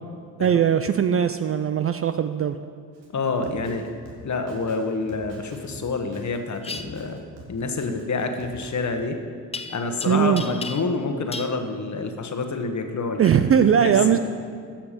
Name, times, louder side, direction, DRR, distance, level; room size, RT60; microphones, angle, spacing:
voice 1, 0.4-2.6 10.1-10.4 13.2-14.2, right 8 dB, 35° right, 10 dB, 0.4 m, -20 dB
Drum kit, 2.9-8.9, right 2 dB, 75° right, 2.1 m, -45 dB
voice 2, 3.1-3.9 4.2-7.2 7.5-9.2 9.7-14.2, left 3 dB, 40° left, 5 dB, 1.3 m, -28 dB
sound 1, 6.6-6.8 9.5-10.1 10.4-11.0 11.3-11.5, left 4 dB, 15° left, 0.6 m, -34 dB
13.5 x 5.9 x 5.2 m, 2.1 s
supercardioid pair, 60°, 44 cm